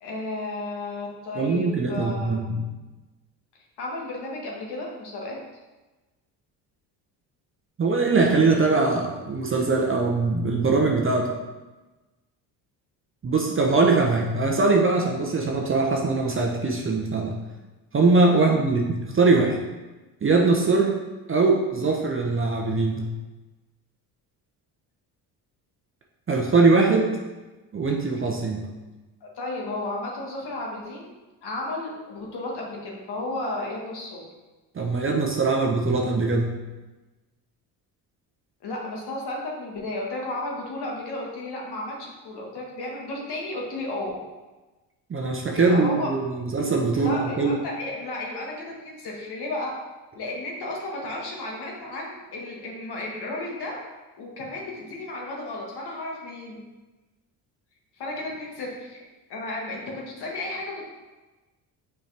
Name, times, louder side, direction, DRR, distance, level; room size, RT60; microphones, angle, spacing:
voice 1, 0.0-2.4 3.8-5.4 18.3-18.6 29.2-31.1 31.4-34.2 38.6-44.2 45.5-46.1 46.9-49.7 50.1-53.8 54.2-56.6 58.0-59.0 59.3-60.8, left 2 dB, 60° left, -2 dB, 1.8 m, -33 dB
voice 2, 1.3-2.6 7.8-11.3 13.2-17.3 17.9-19.6 20.2-20.9 21.3-23.1 26.3-27.1 27.7-28.7 34.7-36.5 45.1-47.6, right 3 dB, 30° right, 0 dB, 0.8 m, -22 dB
6.1 x 4.7 x 3.4 m, 1.2 s
supercardioid pair, 80°, 44 cm